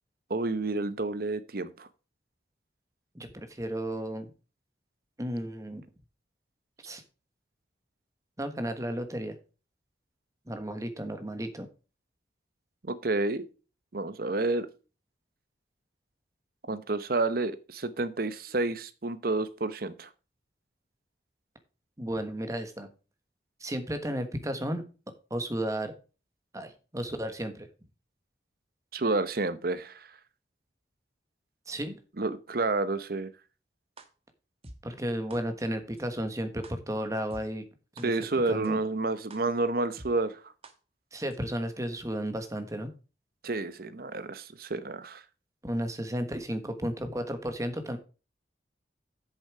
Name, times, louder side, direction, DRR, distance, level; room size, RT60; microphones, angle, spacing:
voice 1, 0.3-1.9 12.8-13.5 13.9-14.7 16.7-20.1 28.9-30.1 32.2-33.3 38.0-40.4 43.4-45.2, right 2 dB, 55° right, 0.8 m, -30 dB
voice 2, 3.1-4.3 5.2-5.8 6.8-7.0 8.4-9.4 10.5-11.7 22.0-22.9 23.6-24.8 25.3-25.9 26.5-27.7 31.7-32.0 34.8-37.6 38.0-38.1 38.5-38.8 41.1-42.9 45.6-48.0, equal, 20° right, 1.3 m, -33 dB
sound 1, 34.0-34.1 34.6-34.7 35.3-35.4 36.0-36.1 36.6-36.7 37.3-37.4 38.0-38.1 38.6-38.7 39.3-39.4 40.0-40.1 40.6-40.7 41.3-41.4, right 2 dB, 35° right, 1.2 m, -47 dB
8.3 x 7.2 x 4.7 m
head